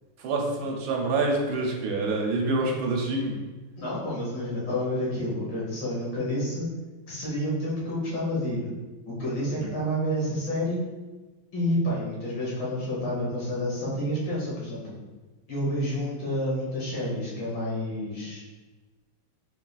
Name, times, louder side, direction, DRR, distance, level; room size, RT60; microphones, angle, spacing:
voice 1, 0.2-3.4, right 2 dB, 85° right, 1 dB, 1.5 m, -26 dB
voice 2, 3.8-6.7 7.1-8.7 9.1-10.8 11.5-15.0 15.5-18.4, equal, 70° left, -6 dB, 2.0 m, -29 dB
4.7 x 3.4 x 2.3 m, 1.2 s
omnidirectional pair, 2.1 m